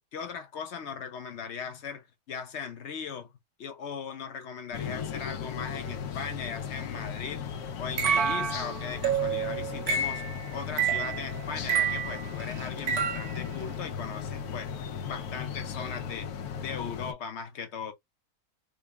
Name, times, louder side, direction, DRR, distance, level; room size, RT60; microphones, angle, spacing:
voice 1, 0.0-3.3 3.6-7.4 7.8-10.2 10.5-14.7 15.1-16.3 16.6-17.9, left 6 dB, 60° left, 0.8 m, -38 dB
sound 1, 4.7-17.1, left 7 dB, 85° left, 1.2 m, -37 dB
sound 2, 8.0-13.5, right 7 dB, 85° right, 1.1 m, -29 dB
3.7 x 2.0 x 3.4 m
omnidirectional pair, 1.6 m